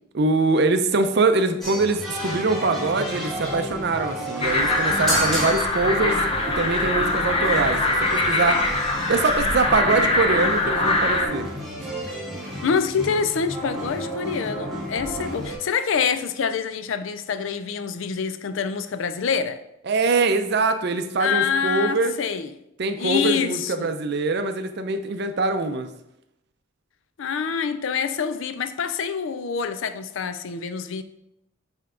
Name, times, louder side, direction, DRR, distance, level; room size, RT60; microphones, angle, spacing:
voice 1, 0.1-6.2 6.6-7.8 8.1-8.6 9.1-11.5 19.9-22.2 22.8-25.9, right 3 dB, 55° right, 0.5 m, -23 dB
sound 1, 1.6-15.5, right 1 dB, ahead, 1.6 m, -31 dB
sound 2, 4.4-11.3, left 2 dB, 30° left, 0.6 m, -23 dB
voice 2, 12.6-19.6 21.2-22.5 23.0-23.9 27.2-31.0, left 6 dB, 70° left, 0.4 m, -26 dB
5.6 x 4.4 x 3.7 m
head